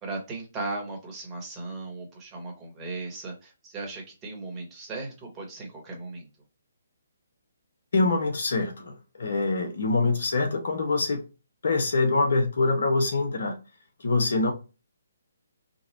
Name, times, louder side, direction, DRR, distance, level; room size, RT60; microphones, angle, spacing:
voice 1, 0.0-6.3, right 3 dB, 20° right, 1.6 m, -37 dB
voice 2, 7.9-11.2 11.6-13.6 14.0-14.5, left 3 dB, 65° left, 1.1 m, -24 dB
3.9 x 2.5 x 2.9 m
figure-of-eight pair, 140°, 0 cm